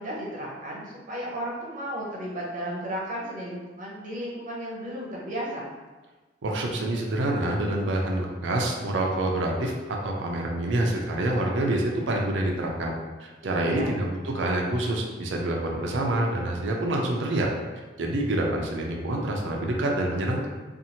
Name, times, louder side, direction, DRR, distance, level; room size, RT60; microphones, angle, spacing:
voice 1, 0.0-5.7 13.6-13.9, equal, 45° right, -5 dB, 0.8 m, -34 dB
voice 2, 6.4-17.5 18.0-20.5, right 1 dB, 75° right, 0 dB, 0.5 m, -27 dB
2.7 x 2.5 x 2.8 m, 1.3 s
head